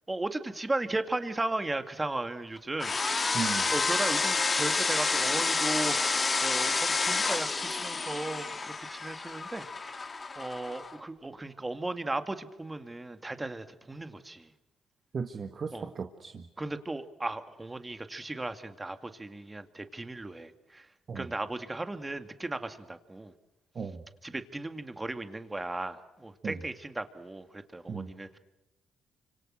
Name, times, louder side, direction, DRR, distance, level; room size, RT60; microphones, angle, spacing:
voice 1, 0.1-2.9 3.7-14.5 15.7-15.9 16.6-20.9 21.1-23.3 24.2-28.4, right 2 dB, 15° right, 9 dB, 2.1 m, -36 dB
sound 1, 2.8-10.9, left 4 dB, 30° left, 1.9 m, -29 dB
voice 2, 3.3-3.7 15.1-16.5 21.1-21.3 23.8-24.0 26.4-26.6 27.9-28.1, right 5 dB, 45° right, 6 dB, 1.8 m, -36 dB
30.0 x 26.0 x 6.5 m, 1.0 s
cardioid pair, 90°, 0 cm